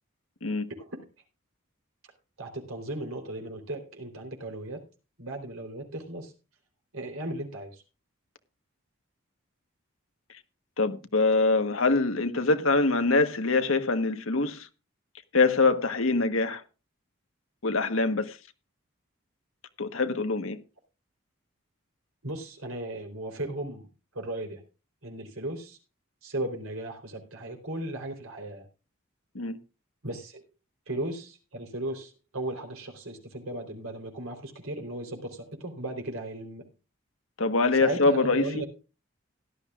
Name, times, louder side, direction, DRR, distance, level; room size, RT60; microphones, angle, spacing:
voice 1, 0.7-1.0 2.4-4.8 5.2-6.3 6.9-7.8 22.2-23.9 24.1-24.6 25.0-25.8 26.2-28.7 30.0-30.4 30.9-36.7 37.7-38.7, right 1 dB, 85° right, 3.8 m, -36 dB
voice 2, 10.8-14.7 15.3-16.6 17.6-18.4 19.8-20.6 29.3-29.6 37.4-38.6, left 3 dB, 75° left, 1.3 m, -24 dB
17.0 x 12.0 x 2.5 m
head